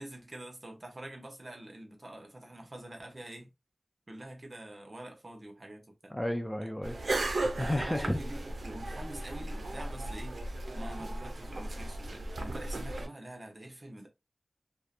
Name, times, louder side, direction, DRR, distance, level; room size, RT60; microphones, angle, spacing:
voice 1, 0.0-3.5 4.1-6.1 6.6-6.7 7.7-10.4 10.7-14.1, right 1 dB, 50° right, 0.8 m, -46 dB
voice 2, 6.1-7.2 7.6-8.2, left 1 dB, 10° left, 0.4 m, -32 dB
sound 1, 6.8-13.1, right 2 dB, 85° right, 0.4 m, -36 dB
2.7 x 2.1 x 2.4 m
wide cardioid pair, 50°, 0 cm